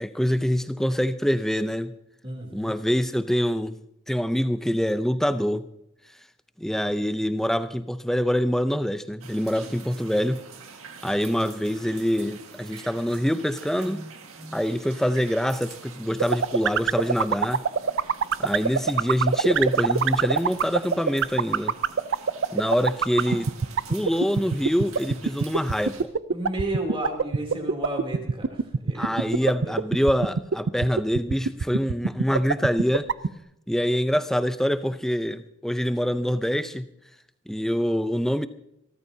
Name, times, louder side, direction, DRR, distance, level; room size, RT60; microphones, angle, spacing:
voice 1, 0.0-1.9 2.5-3.8 4.1-5.6 6.6-10.4 11.0-17.6 18.4-21.7 22.5-23.5 23.9-26.1 28.9-33.1 33.7-36.9 37.5-38.5, equal, ahead, 0.5 m, -25 dB
voice 2, 2.2-2.7 9.6-9.7 26.3-29.8, right 1 dB, 25° right, 3.1 m, -33 dB
sound 1, 9.2-26.0, right 5 dB, 90° right, 1.8 m, -45 dB
sound 2, 16.2-33.3, right 6 dB, 60° right, 0.5 m, -21 dB
26.0 x 13.5 x 2.8 m
head